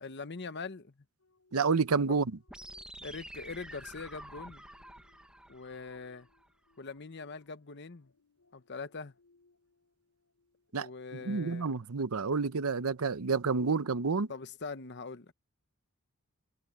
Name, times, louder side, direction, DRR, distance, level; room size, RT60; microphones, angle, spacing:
voice 1, 0.0-0.9 2.1-2.2 3.0-4.6 5.5-6.3 6.8-8.1 8.5-9.1 10.7-11.7 14.3-15.3, left 4 dB, 55° left, 1.0 m, -42 dB
sound 1, 1.2-11.1 11.5-11.7, left 3 dB, 80° left, 5.0 m, -70 dB
voice 2, 1.5-2.3 10.7-10.9 11.2-14.3, right 4 dB, 85° right, 0.8 m, -29 dB
sound 2, 2.5-6.5, right 1 dB, 5° right, 1.2 m, -49 dB
head